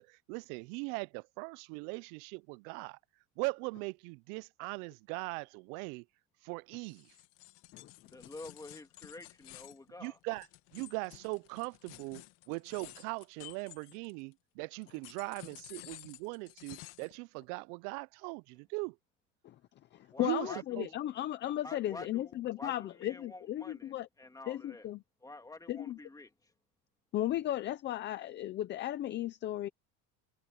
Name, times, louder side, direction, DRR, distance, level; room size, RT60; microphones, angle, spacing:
voice 1, 0.0-3.0 3.4-6.0 6.4-7.1 10.0-10.5 10.7-19.0 20.2-20.5 20.8-20.9, right 29 dB, 75° right, 0.6 m, -40 dB
sound 1, 6.9-14.3 14.8-17.2, left 20 dB, 65° left, 2.0 m, -53 dB
voice 2, 8.1-10.2 20.1-21.0 21.6-24.9 25.2-26.3, left 2 dB, 10° left, 2.2 m, -49 dB
voice 3, 19.9-24.1 24.5-25.0 25.7-26.0 27.1-29.7, left 13 dB, 25° left, 0.4 m, -35 dB
cardioid pair, 165°, 46 cm